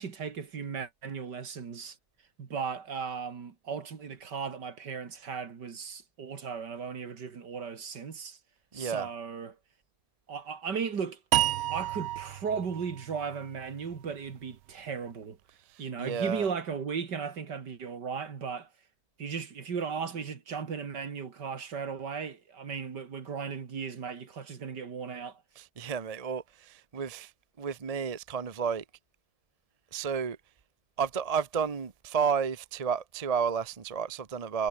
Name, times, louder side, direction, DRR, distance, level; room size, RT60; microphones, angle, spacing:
voice 1, 0.0-2.0 2.4-8.4 8.7-9.6 10.3-11.2 11.7-15.4 15.8-18.7 19.2-25.4, right 6 dB, 55° right, 2.6 m, -36 dB
voice 2, 8.7-9.1 15.7-16.5 25.6-27.3 27.6-28.8 29.9-30.4 31.0-34.7, right 6 dB, 40° right, 0.5 m, -31 dB
sound 1, 11.3-14.5, right 14 dB, 85° right, 1.6 m, -31 dB
omnidirectional pair, 2.2 m